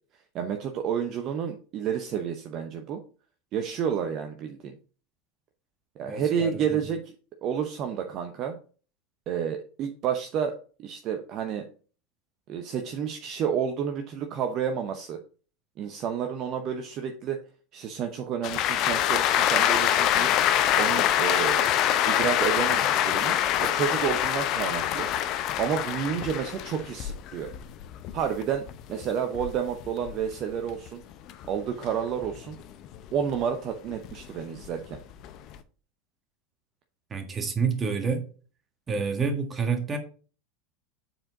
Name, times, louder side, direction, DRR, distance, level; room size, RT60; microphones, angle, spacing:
voice 1, 0.3-3.0 3.5-4.7 6.0-7.1 7.4-8.6 9.3-11.6 12.5-15.2 15.8-17.4 17.7-20.3 20.8-21.7 22.1-23.3 23.6-25.1 25.6-27.5 28.1-28.6 28.9-31.0 31.5-32.6 33.1-35.0, right 8 dB, 45° right, 0.8 m, -30 dB
voice 2, 6.0-6.8 37.1-38.2 38.9-40.0, right 5 dB, 25° right, 1.6 m, -28 dB
sound 1, 18.4-30.9 31.3-33.4 33.9-35.6, left 11 dB, 45° left, 0.6 m, -25 dB
7.6 x 4.6 x 3.9 m
figure-of-eight pair, 80°, 0 cm